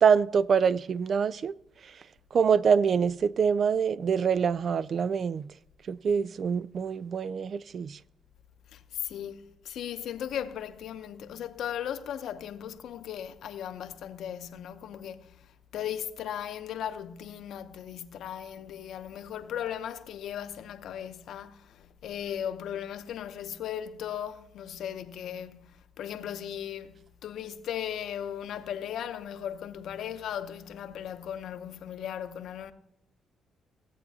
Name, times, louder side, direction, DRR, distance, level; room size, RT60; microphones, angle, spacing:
voice 1, 0.0-1.5 2.3-5.5 5.9-8.0, right 6 dB, 50° right, 0.4 m, -25 dB
voice 2, 8.7-15.3 15.7-26.9 27.2-32.7, left 9 dB, 75° left, 0.8 m, -37 dB
16.5 x 8.3 x 2.8 m
cardioid pair, 90°, 0 cm